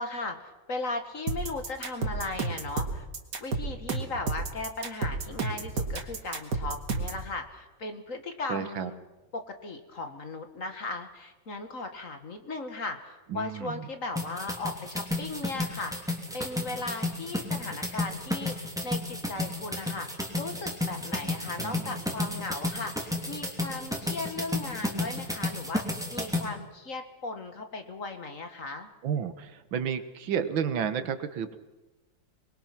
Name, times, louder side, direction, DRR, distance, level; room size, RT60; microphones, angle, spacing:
voice 1, 0.0-3.1 3.4-9.0 9.3-18.6 18.8-28.9, left 3 dB, 45° left, 7 dB, 2.0 m, -37 dB
sound 1, 1.3-7.2, right 3 dB, 65° right, 2.5 m, -31 dB
voice 2, 8.5-8.9 13.3-13.9 21.6-22.2 29.0-31.6, right 7 dB, 85° right, 10 dB, 2.0 m, -32 dB
sound 2, 14.2-26.4, left 2 dB, ahead, 3.0 m, -32 dB
25.5 x 21.5 x 6.0 m, 1.1 s
omnidirectional pair, 2.1 m